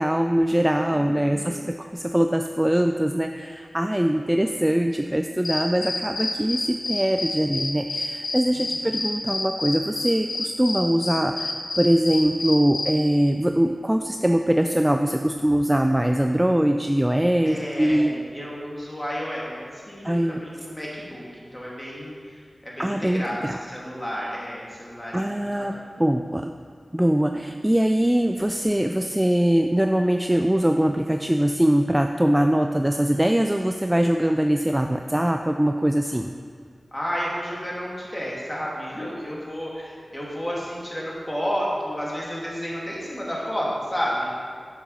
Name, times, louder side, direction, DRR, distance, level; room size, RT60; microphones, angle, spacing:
voice 1, 0.0-18.1 20.0-20.4 22.8-23.6 25.1-26.5 26.9-36.3, right 1 dB, 10° right, 5 dB, 0.3 m, -22 dB
voice 2, 0.8-1.6 8.5-9.0 17.4-21.3 21.5-22.2 22.6-25.2 25.6-25.8 36.9-44.3, equal, 20° left, -5 dB, 2.4 m, -31 dB
sound 1, 5.4-13.0, left 2 dB, 90° left, 1.0 m, -29 dB
7.2 x 7.2 x 5.5 m, 2.1 s
wide cardioid pair, 80°, 0 cm